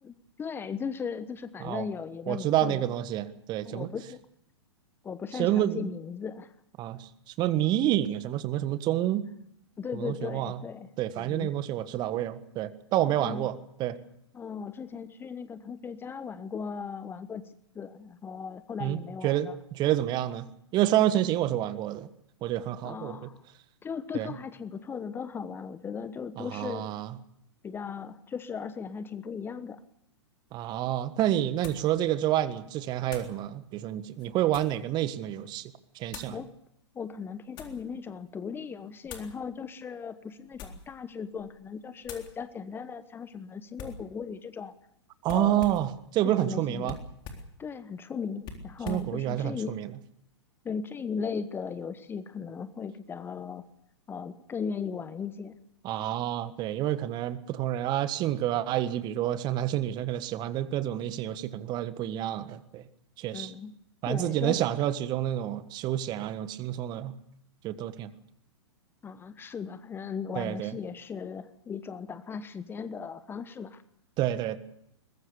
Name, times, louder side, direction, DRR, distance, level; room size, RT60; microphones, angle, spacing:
voice 1, 0.0-2.9 3.6-4.2 5.0-6.6 9.8-10.9 11.2-11.5 13.0-13.5 14.3-19.5 22.8-23.4 23.8-26.9 27.6-29.8 36.3-36.5 36.9-44.7 45.3-45.7 46.2-46.9 47.6-49.8 50.6-53.6 54.1-55.6 63.3-63.7 64.1-64.6 69.0-73.8, left 6 dB, 15° left, 13 dB, 1.1 m, -37 dB
voice 2, 2.3-3.9 5.3-5.9 6.8-9.3 9.9-10.6 11.0-14.0 18.8-20.5 20.7-22.1 22.4-23.3 24.1-24.3 26.4-27.1 30.5-36.4 45.2-46.9 48.9-49.9 55.8-62.8 63.2-63.5 64.0-67.1 67.6-68.1 70.3-70.7 74.2-74.6, right 13 dB, 30° right, 13 dB, 1.5 m, -29 dB
sound 1, 30.5-30.6 31.6-31.9 33.1-33.4 34.1-34.8 36.1-36.4 37.1-37.8 39.0-39.4 40.4-40.9 41.3-41.6 42.0-42.3 43.8-44.1 45.2-45.9 46.8-47.5 48.4-49.1, left 5 dB, 30° left, 3.8 m, -44 dB
22.5 x 21.0 x 6.7 m, 0.74 s
figure-of-eight pair, 110°, 15 cm